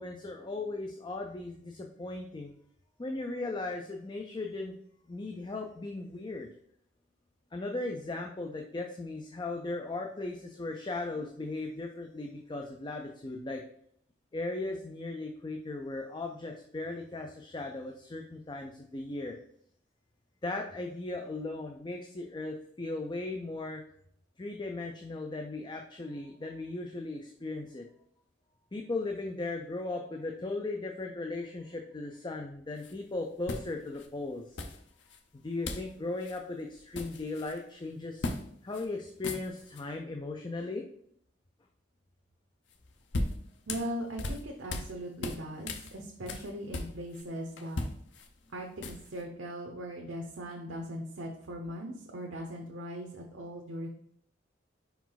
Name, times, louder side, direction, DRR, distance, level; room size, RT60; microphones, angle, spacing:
voice 1, 0.0-2.5 3.0-4.7 5.1-6.5 7.5-13.6 14.3-19.4 20.4-23.8 24.4-27.9 28.7-34.6 35.3-38.3 38.6-40.9, left 2 dB, 25° left, 3 dB, 0.5 m, -37 dB
sound 1, 32.8-32.9 33.5-34.1 34.6-35.2 35.6-35.9 36.2-36.4 36.7-37.6 38.2-38.4 38.7-38.9 39.1-39.8 42.7-44.9 45.2-47.2 47.6-49.2, left 2 dB, 65° left, 0.7 m, -37 dB
voice 2, 43.7-47.8 48.5-53.9, equal, 80° right, 1 dB, 0.8 m, -39 dB
5.0 x 4.7 x 3.9 m, 0.66 s
head